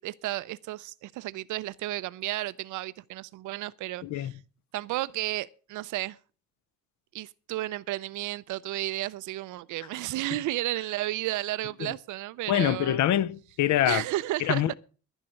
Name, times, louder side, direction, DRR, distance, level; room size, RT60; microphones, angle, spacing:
voice 1, 0.0-4.4 4.7-6.2 7.1-13.0 13.9-14.8, right 16 dB, 75° right, 0.5 m, -33 dB
voice 2, 4.0-4.3 11.8-11.9 12.5-14.0 14.4-14.8, left 12 dB, 70° left, 0.6 m, -25 dB
11.0 x 10.5 x 6.3 m
cardioid pair, 90°, 30 cm